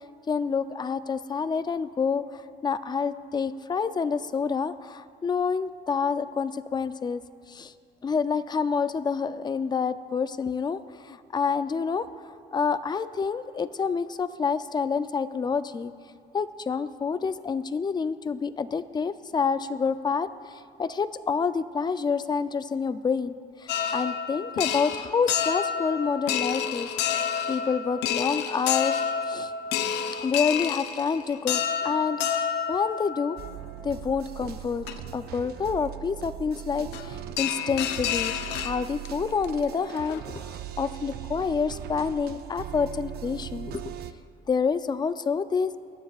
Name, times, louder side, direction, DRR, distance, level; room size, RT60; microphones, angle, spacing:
voice 1, 0.3-7.2 7.5-7.7 8.0-10.8 11.1-12.1 12.5-15.9 16.3-20.3 20.8-23.4 23.6-26.9 27.5-29.0 29.3-29.5 30.2-32.2 32.7-33.4 33.8-34.9 35.1-43.8 44.5-45.7, left 5 dB, 25° left, 13 dB, 0.5 m, -28 dB
sound 1, 23.7-33.7 34.4-34.5 34.9-35.0 36.9-37.1 37.4-39.1 39.4-39.5 39.9-40.2, left 8 dB, 85° left, 0.7 m, -29 dB
sound 2, 33.4-44.1, right 11 dB, 70° right, 0.6 m, -39 dB
27.5 x 10.0 x 2.4 m, 2.3 s
cardioid pair, 110°, 17 cm